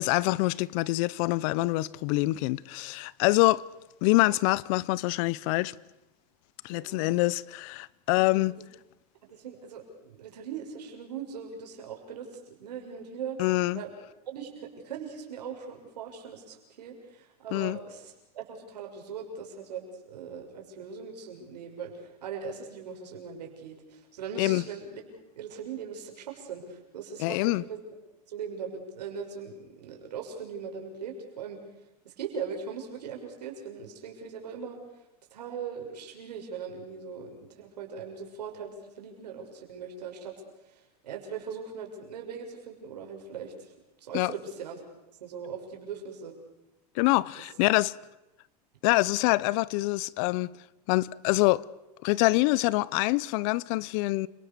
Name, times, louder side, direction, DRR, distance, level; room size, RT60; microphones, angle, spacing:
voice 1, 0.0-3.6 4.0-5.7 6.6-8.6 13.4-13.8 17.5-17.8 24.4-24.6 27.2-27.6 44.1-44.3 47.0-47.9 48.8-50.5 50.9-51.6 52.0-54.3, left 20 dB, 55° left, 0.8 m, -25 dB
voice 2, 6.7-7.0 9.3-13.4 13.7-13.9 14.3-25.0 25.4-27.8 28.3-31.6 32.0-34.8 35.3-40.3 40.7-43.7 44.0-44.8 45.2-46.4, right 6 dB, 85° right, 6.2 m, -40 dB
29.5 x 19.0 x 6.9 m
supercardioid pair, 120°, 20 cm